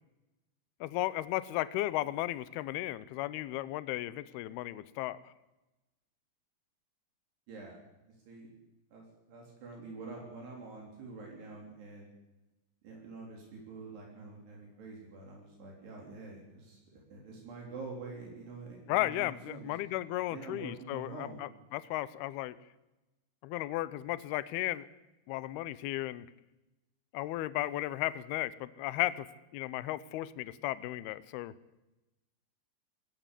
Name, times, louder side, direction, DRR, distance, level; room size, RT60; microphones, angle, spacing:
voice 1, 0.8-5.2 18.9-22.6 23.4-24.9 25.3-26.3 27.1-29.3 29.5-31.5, left 16 dB, 75° left, 17 dB, 2.5 m, -35 dB
voice 2, 8.9-12.1 12.8-19.7 20.3-21.5, right 3 dB, 65° right, -1 dB, 5.5 m, -46 dB
21.5 x 15.5 x 8.3 m, 1.0 s
omnidirectional pair, 5.1 m